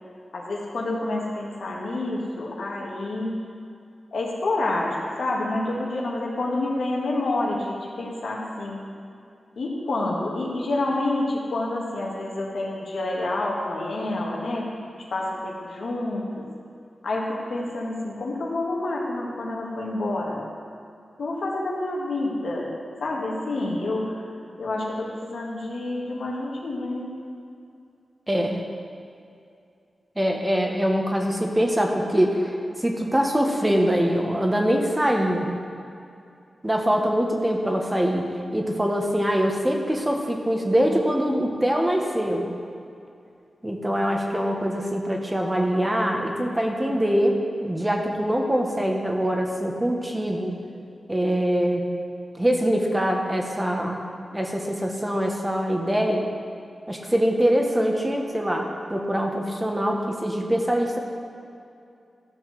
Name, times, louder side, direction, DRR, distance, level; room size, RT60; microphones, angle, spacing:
voice 1, 0.3-3.4 4.1-8.8 9.6-14.7 15.0-16.4 17.0-20.5 21.2-22.7 23.0-24.2 24.6-27.1, left 2 dB, 75° left, -3 dB, 2.0 m, -28 dB
voice 2, 28.3-28.6 30.1-35.5 36.6-42.5 43.6-50.6 51.1-51.8 52.4-54.0 54.3-56.3 56.9-61.0, equal, 15° right, 1 dB, 1.6 m, -23 dB
14.0 x 5.5 x 6.7 m, 2.5 s
cardioid pair, 45°, 0 cm